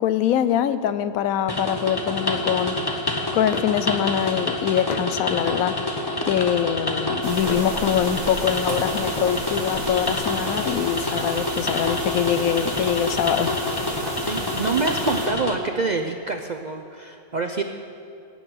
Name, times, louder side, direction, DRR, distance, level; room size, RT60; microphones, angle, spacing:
voice 1, 0.0-2.8 3.3-5.8 6.2-13.6, left 9 dB, 90° left, 13 dB, 1.1 m, -24 dB
sound 1, 1.5-15.6, left 2 dB, 20° left, 0.9 m, -27 dB
sound 2, 2.1-8.5, left 6 dB, 55° left, 0.5 m, -40 dB
sound 3, 7.2-15.3, right 1 dB, 30° right, 2.1 m, -33 dB
voice 2, 14.0-17.6, right 4 dB, 55° right, 5 dB, 0.5 m, -27 dB
16.5 x 6.5 x 9.1 m, 2.6 s
omnidirectional pair, 1.5 m